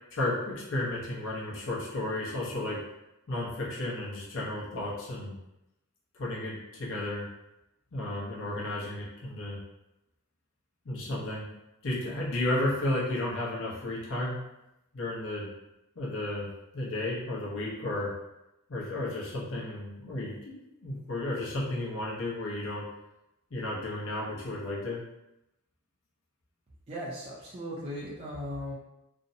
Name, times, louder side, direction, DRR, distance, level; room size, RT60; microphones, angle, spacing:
voice 1, 0.1-2.8 3.3-5.3 6.2-7.3 7.9-9.6 10.8-11.5 11.8-14.4 14.9-15.5 16.0-16.5 16.7-18.1 18.7-22.9 23.5-25.0, left 1 dB, 60° left, -5 dB, 0.7 m, -33 dB
voice 2, 26.9-28.7, equal, 30° right, -7 dB, 0.4 m, -37 dB
2.5 x 2.0 x 2.6 m, 0.92 s
head